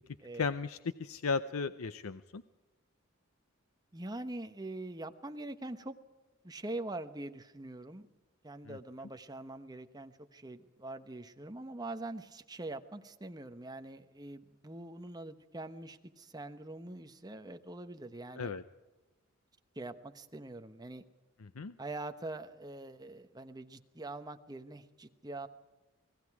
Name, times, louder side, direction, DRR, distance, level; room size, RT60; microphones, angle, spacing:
voice 1, 0.3-2.4 8.7-8.8 18.4-18.6 21.4-21.7, left 5 dB, 80° left, 13 dB, 0.6 m, -35 dB
voice 2, 3.9-6.0 6.4-8.1 8.4-18.5 19.7-21.0 21.8-25.5, right 2 dB, 20° right, 8 dB, 1.1 m, -44 dB
28.5 x 19.0 x 4.8 m, 1.1 s
head